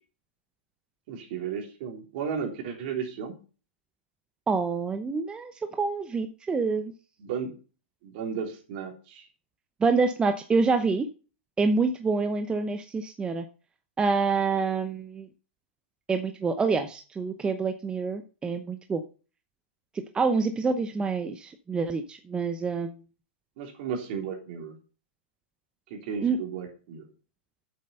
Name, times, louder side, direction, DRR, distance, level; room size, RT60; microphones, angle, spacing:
voice 1, 1.1-3.3 7.2-7.5 8.0-9.2 23.6-24.8 25.9-27.1, right 6 dB, 55° right, 2 dB, 3.4 m, -34 dB
voice 2, 4.5-6.9 9.8-11.1 11.6-13.4 14.0-15.3 16.1-19.0 20.1-22.9 26.2-26.4, right 4 dB, 15° right, 8 dB, 0.7 m, -27 dB
8.5 x 7.4 x 5.5 m, 0.36 s
hypercardioid pair, 130°, 6 cm